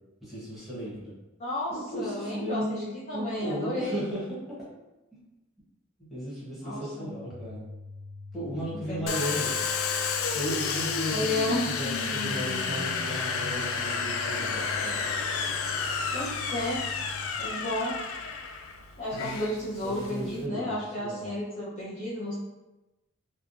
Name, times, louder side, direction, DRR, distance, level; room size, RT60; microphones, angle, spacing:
voice 1, 0.2-1.1 1.7-4.7 5.1-5.2 6.1-7.6 8.3-9.5 10.3-15.0 16.5-16.8 19.8-21.3, equal, ahead, -10 dB, 1.1 m, -35 dB
voice 2, 1.4-4.0 6.6-7.1 8.9-9.2 11.1-11.7 16.1-16.8 17.4-18.0 19.0-22.3, left 1 dB, 30° left, -10 dB, 0.7 m, -32 dB
sound 1, 7.3-17.3, left 3 dB, 40° right, 0.3 m, -44 dB
Domestic sounds home sounds, 9.1-20.4, left 5 dB, 65° left, 0.3 m, -31 dB
3.4 x 2.2 x 2.5 m, 1.0 s
head